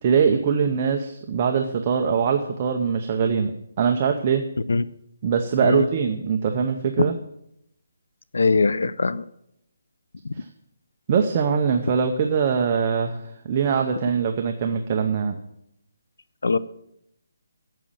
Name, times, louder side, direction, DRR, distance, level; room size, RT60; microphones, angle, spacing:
voice 1, 0.0-3.5 3.8-4.4 5.2-7.2 11.1-15.4, right 6 dB, 20° right, 4 dB, 0.6 m, -22 dB
voice 2, 8.3-9.2 16.4-16.6, left 4 dB, 75° left, 17 dB, 0.6 m, -21 dB
9.1 x 7.3 x 8.7 m, 0.77 s
hypercardioid pair, 180°, 0 cm